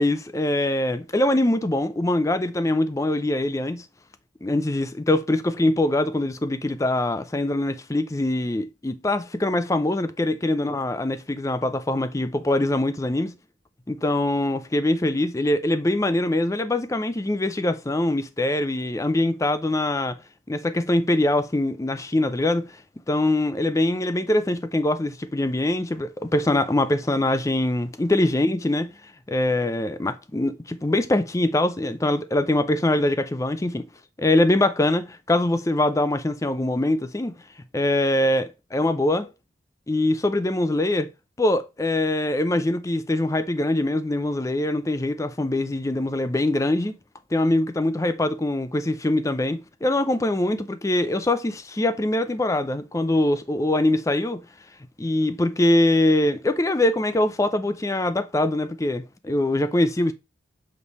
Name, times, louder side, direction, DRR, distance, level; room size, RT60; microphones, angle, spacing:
voice 1, 0.0-3.9 4.4-13.4 13.9-20.2 20.5-22.8 23.1-28.9 29.3-33.9 34.2-37.3 37.7-39.2 39.9-41.1 41.4-46.9 47.3-54.4 55.0-60.1, left 1 dB, 15° left, 0.4 m, -23 dB
7.1 x 3.3 x 4.0 m
head